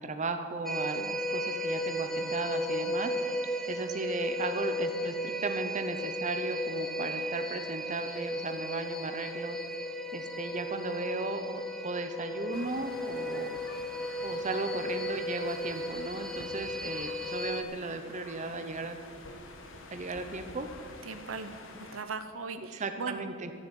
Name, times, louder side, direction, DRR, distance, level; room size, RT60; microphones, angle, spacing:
voice 1, 0.0-3.3 3.7-9.6 10.1-13.6 14.2-19.0 19.9-20.7 22.7-23.5, right 3 dB, 35° right, 7 dB, 0.8 m, -36 dB
sound 1, 0.7-17.6, equal, ahead, 0.6 m, -35 dB
sound 2, 12.5-22.0, left 2 dB, 70° left, 1.4 m, -48 dB
voice 2, 21.0-23.2, right 4 dB, 80° right, 9 dB, 0.8 m, -39 dB
12.5 x 7.1 x 9.1 m, 2.3 s
head